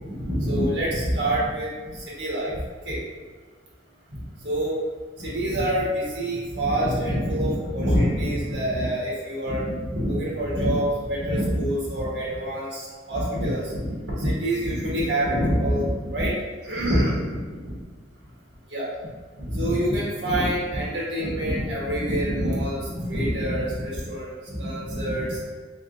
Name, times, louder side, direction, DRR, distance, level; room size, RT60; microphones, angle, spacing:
voice 1, 0.1-2.6 2.8-3.0 4.1-4.8 5.2-16.3 16.6-17.4 18.7-18.9 19.4-25.4, equal, 90° right, -6 dB, 1.4 m, -26 dB
3.6 x 3.5 x 2.5 m, 1.4 s
head